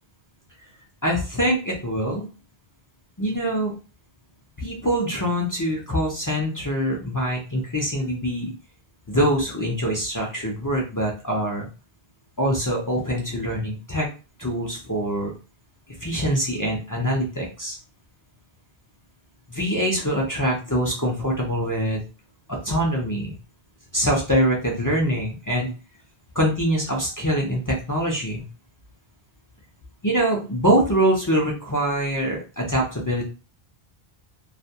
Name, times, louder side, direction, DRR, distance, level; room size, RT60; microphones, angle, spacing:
voice 1, 1.0-2.3 3.2-3.7 4.6-8.5 9.1-11.7 12.4-14.1 14.4-15.3 16.0-17.8 19.5-22.0 22.5-23.3 23.9-25.7 26.3-28.4 30.0-33.2, equal, 30° left, -3 dB, 0.4 m, -24 dB
2.3 x 2.2 x 2.7 m, 0.33 s
omnidirectional pair, 1.1 m